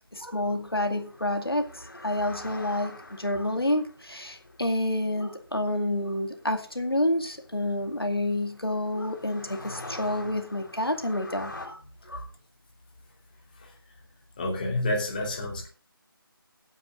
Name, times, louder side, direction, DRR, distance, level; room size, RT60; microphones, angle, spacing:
voice 1, 0.1-11.8 12.1-12.3, left 1 dB, 85° left, 4 dB, 2.1 m, -29 dB
sound 1, 0.8-11.7, left 2 dB, 55° left, 3.7 m, -46 dB
voice 2, 14.4-15.7, left 2 dB, 20° left, 0 dB, 2.8 m, -29 dB
20.0 x 9.4 x 2.5 m, 0.37 s
figure-of-eight pair, 160°, 12 cm